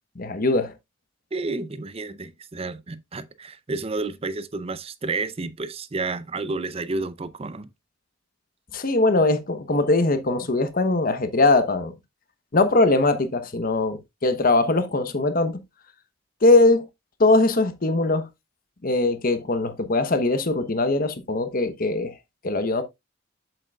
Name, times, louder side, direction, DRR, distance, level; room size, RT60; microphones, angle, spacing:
voice 1, 0.2-0.7 8.7-11.9 12.5-15.6 16.4-16.8 17.2-18.3 18.8-22.1 22.4-22.8, left 2 dB, 45° left, 1.0 m, -21 dB
voice 2, 1.3-7.7, right 3 dB, 30° right, 0.6 m, -31 dB
7.7 x 7.5 x 2.3 m
head